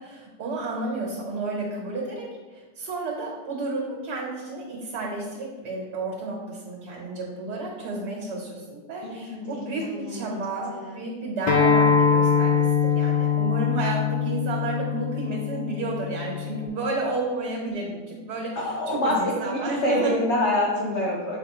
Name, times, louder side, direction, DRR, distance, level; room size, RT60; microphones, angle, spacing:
voice 1, 0.0-18.6 18.9-20.1, right 2 dB, 75° right, -3 dB, 1.7 m, -31 dB
voice 2, 9.0-11.0 18.5-21.4, left 1 dB, 50° left, -3 dB, 0.9 m, -27 dB
Acoustic guitar, 11.5-16.7, left 7 dB, 80° left, 1.4 m, -23 dB
7.1 x 4.6 x 2.9 m, 1.3 s
omnidirectional pair, 1.8 m